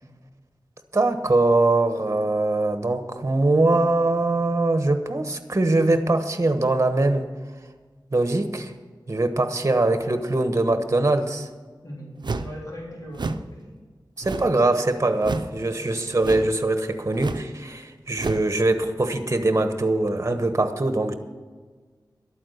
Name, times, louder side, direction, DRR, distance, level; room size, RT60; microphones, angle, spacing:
voice 1, 0.9-7.3 8.1-8.7 9.1-11.5 14.2-21.1, right 2 dB, 35° right, 8 dB, 1.1 m, -22 dB
voice 2, 11.8-13.8, equal, 45° left, -4 dB, 3.7 m, -39 dB
sound 1, 12.2-12.6 13.1-13.5 14.2-14.6 15.2-15.6 16.2-16.6 17.2-17.5 18.1-18.5, right 3 dB, 65° right, 0.6 m, -30 dB
12.0 x 8.8 x 6.6 m, 1.4 s
wide cardioid pair, 80°, 8 cm